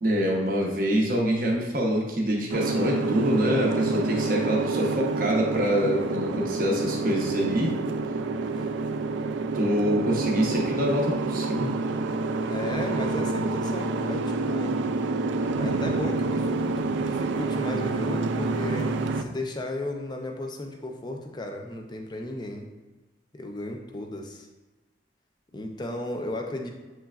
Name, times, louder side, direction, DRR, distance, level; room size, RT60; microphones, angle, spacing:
voice 1, 0.0-7.7 9.5-11.8, equal, 50° right, -2 dB, 0.7 m, -25 dB
Boat Water vehicle, 2.5-19.2, right 3 dB, 80° right, 0.3 m, -28 dB
voice 2, 12.5-14.8 15.6-22.7 23.3-24.5 25.5-26.7, left 1 dB, 25° left, 2 dB, 0.5 m, -35 dB
6.9 x 3.2 x 2.3 m, 1.2 s
head